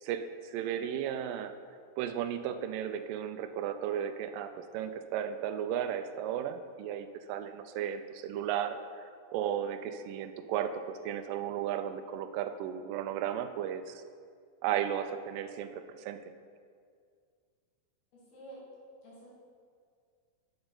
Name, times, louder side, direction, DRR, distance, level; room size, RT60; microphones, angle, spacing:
voice 1, 0.0-1.5 2.0-13.9 14.6-16.2, right 9 dB, 80° right, 9 dB, 2.0 m, -35 dB
voice 2, 18.1-18.6 19.0-19.3, right 2 dB, 85° left, -7 dB, 4.2 m, -50 dB
10.5 x 6.9 x 3.9 m, 2.1 s
omnidirectional pair, 4.3 m